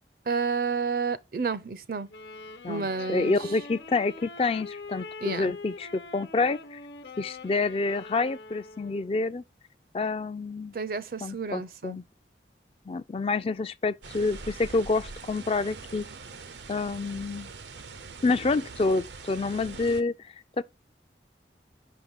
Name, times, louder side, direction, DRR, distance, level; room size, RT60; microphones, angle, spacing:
voice 1, 0.3-2.1 2.7-3.3 5.2-5.5 10.7-12.0, right 5 dB, 55° right, 0.5 m, -30 dB
Wind instrument woodwind instrument, 2.1-9.3, left 3 dB, 80° left, 1.0 m, -44 dB
voice 2, 2.6-6.8 7.2-9.4 9.9-10.7 11.2-12.0 12.9-16.0 16.7-17.5 18.2-20.6, left 3 dB, 35° left, 0.3 m, -28 dB
sound 1, 14.0-20.0, right 4 dB, 90° right, 0.7 m, -43 dB
5.7 x 4.7 x 3.6 m
head